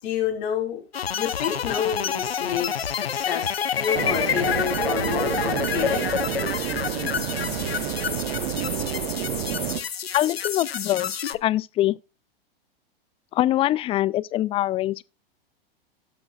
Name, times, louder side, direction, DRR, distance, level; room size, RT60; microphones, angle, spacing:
voice 1, 0.0-0.8 1.1-6.1 6.6-6.7, left 9 dB, 55° left, 4.5 m, -29 dB
sound 1, 0.9-11.4, left 8 dB, 85° left, 0.8 m, -28 dB
sound 2, 3.9-9.8, right 11 dB, 55° right, 1.0 m, -29 dB
voice 2, 10.1-12.0 13.3-15.0, left 14 dB, 20° left, 0.4 m, -24 dB
17.5 x 6.2 x 2.4 m
hypercardioid pair, 100°, 30 cm